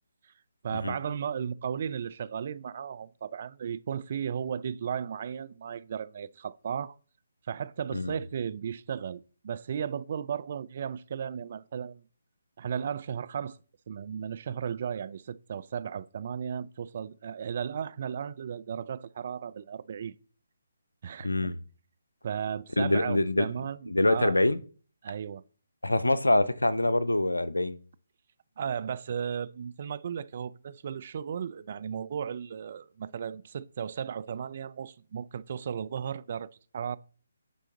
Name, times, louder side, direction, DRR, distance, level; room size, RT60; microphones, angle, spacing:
voice 1, 0.6-7.0 7.5-12.0 12.6-13.6 13.9-20.1 21.0-21.5 22.2-24.4 25.0-25.4 28.6-37.0, right 7 dB, 45° right, 0.4 m, -35 dB
voice 2, 21.2-21.6 22.8-23.5 23.9-24.6 25.8-27.8, left 2 dB, 85° left, 0.6 m, -25 dB
9.2 x 3.8 x 3.7 m
figure-of-eight pair, 145°, 0 cm